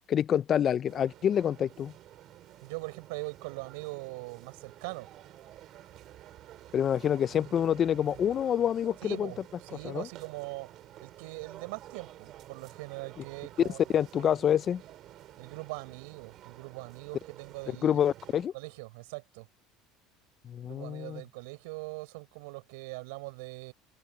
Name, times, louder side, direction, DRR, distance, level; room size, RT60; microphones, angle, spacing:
voice 1, 0.1-1.9 6.7-9.3 9.8-10.1 13.9-14.8 17.8-18.5 20.4-21.2, left 9 dB, 40° left, 0.5 m, -27 dB
sound 1, 0.8-18.5, right 13 dB, 55° right, 5.7 m, -51 dB
voice 2, 2.6-5.1 9.0-10.7 11.0-14.3 15.4-18.1 18.5-19.5 20.6-23.7, right 27 dB, 85° right, 5.6 m, -42 dB
open air
supercardioid pair, 110°, 0 cm